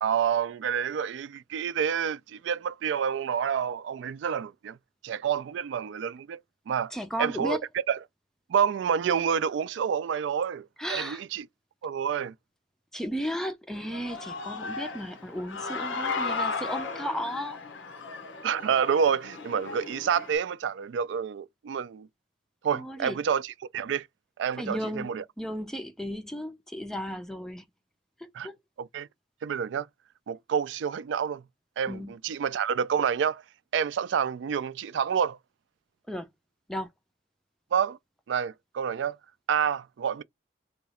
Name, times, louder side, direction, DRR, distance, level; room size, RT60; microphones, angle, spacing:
voice 1, 0.0-4.8 5.0-6.4 6.7-6.9 7.2-7.6 7.9-8.0 8.5-11.4 11.8-12.3 18.4-22.1 22.6-24.1 24.4-25.2 28.3-28.5 28.8-29.1 29.4-29.9 30.3-31.4 31.8-33.4 33.7-35.4 37.7-38.0 38.3-39.2 39.5-40.2, right 7 dB, 75° right, 0.3 m, -28 dB
voice 2, 6.9-7.6 10.8-11.2 12.9-17.6 22.7-23.2 24.6-27.6 28.4-28.6 31.9-32.2 36.1-36.3 36.7-36.9, equal, 5° left, 0.4 m, -34 dB
Human voice / Cheering, 13.7-20.4, left 4 dB, 85° left, 0.8 m, -35 dB
2.9 x 2.4 x 4.1 m
head